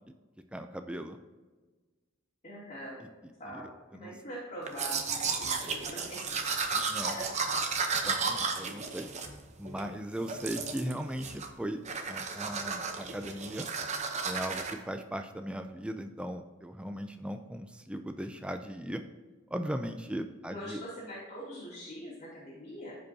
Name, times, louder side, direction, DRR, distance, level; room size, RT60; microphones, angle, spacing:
voice 1, 0.5-1.2 3.0-3.1 3.5-4.1 6.7-7.2 8.0-9.1 9.6-11.8 12.1-13.7 14.2-19.0 19.5-20.8, equal, 5° right, 6 dB, 0.4 m, -38 dB
voice 2, 2.4-3.0 3.4-6.6 7.0-7.3 20.4-23.0, equal, 35° left, -10 dB, 2.8 m, -44 dB
Domestic sounds home sounds, 4.7-9.9 10.3-10.9 11.2-11.6 11.8-14.7, right 4 dB, 35° right, 0.8 m, -33 dB
14.5 x 5.2 x 2.8 m, 1.3 s
head